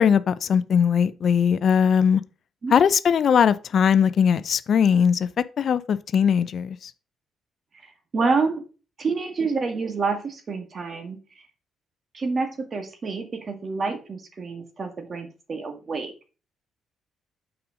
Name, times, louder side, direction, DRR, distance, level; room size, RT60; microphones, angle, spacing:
voice 1, 0.0-2.2 2.7-5.3 5.6-6.9, left 7 dB, 55° left, 0.5 m, -20 dB
voice 2, 7.8-8.6 9.0-11.2 12.1-16.1, right 4 dB, 40° right, 1.8 m, -28 dB
6.0 x 4.9 x 5.0 m
cardioid pair, 90°, 0 cm